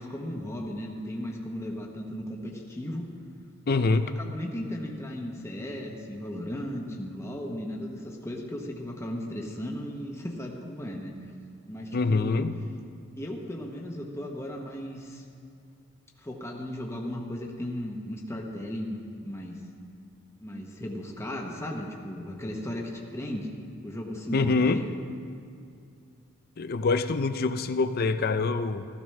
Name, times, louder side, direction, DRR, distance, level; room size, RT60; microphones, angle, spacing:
voice 1, 0.0-3.1 4.0-11.1 11.7-12.5 13.2-15.2 16.2-19.7 20.4-23.5 23.8-24.9, left 1 dB, 15° left, -1 dB, 1.0 m, -36 dB
voice 2, 3.7-4.1 11.9-12.5 24.3-24.8 26.6-28.8, left 3 dB, 45° left, 11 dB, 0.5 m, -25 dB
15.5 x 13.5 x 3.3 m, 2.4 s
head